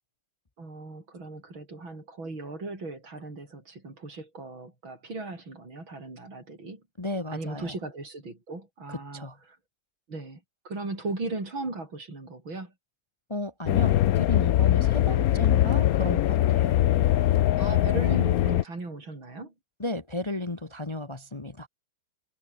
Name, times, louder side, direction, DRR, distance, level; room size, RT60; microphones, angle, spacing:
voice 1, 0.6-6.8 7.3-9.6 10.1-12.7 17.6-19.5, right 3 dB, 75° right, 7.2 m, -37 dB
voice 2, 7.0-7.7 8.9-9.4 13.3-16.8 19.8-21.7, left 2 dB, 20° left, 0.8 m, -34 dB
sound 1, 13.7-18.6, left 13 dB, 70° left, 0.9 m, -22 dB
omnidirectional pair, 2.2 m